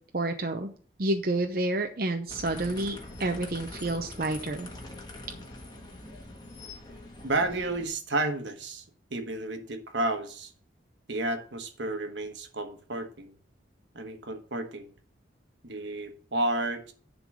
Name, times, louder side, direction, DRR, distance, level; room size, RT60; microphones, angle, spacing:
voice 1, 0.1-0.7 1.0-4.7, right 2 dB, 50° right, 5 dB, 0.7 m, -29 dB
sound 1, 2.3-7.9, left 2 dB, 25° left, 1.4 m, -44 dB
voice 2, 7.2-8.8 9.1-10.5 11.1-13.3 13.9-14.9 15.6-16.9, right 2 dB, 80° right, 6 dB, 1.3 m, -31 dB
10.5 x 3.9 x 6.2 m, 0.43 s
head